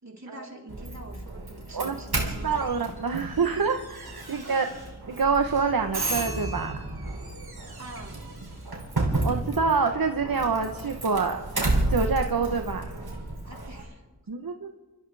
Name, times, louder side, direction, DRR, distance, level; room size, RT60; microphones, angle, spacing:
voice 1, 0.0-3.0 4.3-4.6 7.8-8.2 13.4-14.0, right 1 dB, 50° right, -2 dB, 3.8 m, -45 dB
Doorbell, 0.7-13.8, right 2 dB, 90° right, 3.2 m, -32 dB
voice 2, 1.7-4.7 5.1-6.8 9.2-11.4 11.9-12.8 14.3-14.7, right 5 dB, 70° right, 5 dB, 1.0 m, -26 dB
29.5 x 14.0 x 3.4 m, 1.2 s
wide cardioid pair, 50°, 36 cm